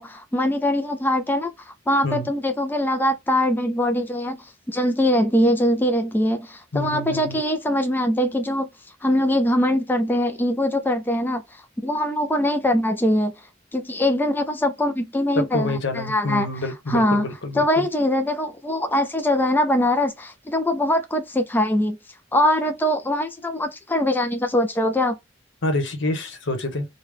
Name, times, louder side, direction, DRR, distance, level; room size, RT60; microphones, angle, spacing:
voice 1, 0.0-8.7 9.0-11.4 11.8-13.3 13.7-16.5 16.9-17.2 17.6-22.0 22.3-25.2, left 1 dB, 10° left, 0.4 m, -22 dB
voice 2, 6.7-7.4 15.4-17.9 25.6-26.9, left 1 dB, 70° left, 1.0 m, -27 dB
3.3 x 2.2 x 3.5 m
head